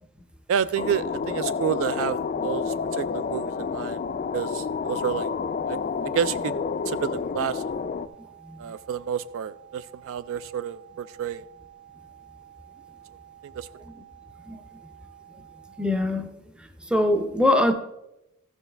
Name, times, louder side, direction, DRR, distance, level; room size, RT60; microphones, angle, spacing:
voice 1, 0.5-4.0 4.3-5.3 5.7-5.8 6.0-6.6 6.9-7.6 8.6-11.4 13.4-13.7, right 8 dB, 60° right, 0.3 m, -29 dB
sound 1, 0.8-8.1, left 5 dB, 35° left, 0.3 m, -29 dB
sound 2, 7.5-15.9, right 11 dB, 35° right, 1.8 m, -51 dB
voice 2, 15.8-16.3 16.8-17.7, left 1 dB, 5° right, 0.6 m, -22 dB
14.0 x 6.9 x 3.3 m
head